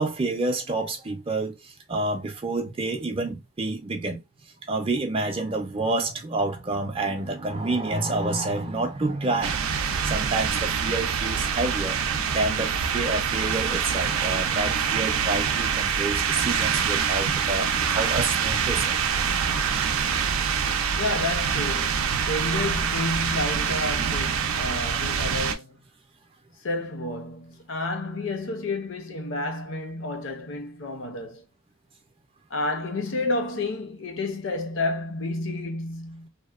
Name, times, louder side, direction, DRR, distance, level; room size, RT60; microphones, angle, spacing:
voice 1, 0.0-4.2 4.7-12.0 12.3-18.9, right 2 dB, 25° right, 0.4 m, -28 dB
sound 1, 9.4-25.5, right 6 dB, 80° right, 0.4 m, -25 dB
voice 2, 21.0-25.8 26.6-31.4 32.5-36.3, left 2 dB, 60° left, 0.6 m, -30 dB
2.7 x 2.0 x 2.3 m
head